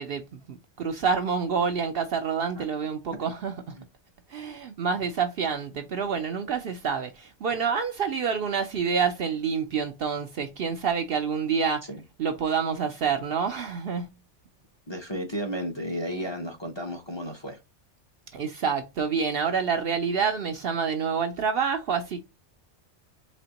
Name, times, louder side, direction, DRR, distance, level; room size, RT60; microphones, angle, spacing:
voice 1, 0.0-3.8 4.3-11.9 12.2-14.1 18.3-22.2, right 6 dB, 60° right, 0.7 m, -28 dB
voice 2, 14.9-17.6, equal, 25° left, 0.7 m, -33 dB
4.2 x 3.0 x 2.8 m
omnidirectional pair, 1.2 m